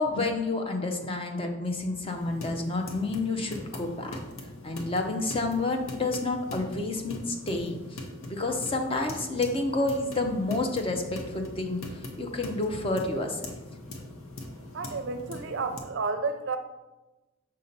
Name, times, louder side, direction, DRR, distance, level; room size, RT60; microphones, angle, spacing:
voice 1, 0.0-4.2 4.6-13.4, left 2 dB, 25° left, 4 dB, 0.6 m, -29 dB
sound 1, 2.1-15.8, left 1 dB, 80° left, 0.9 m, -42 dB
voice 2, 14.7-16.6, right 4 dB, 60° right, 8 dB, 0.5 m, -31 dB
6.5 x 2.8 x 5.2 m, 1.1 s
head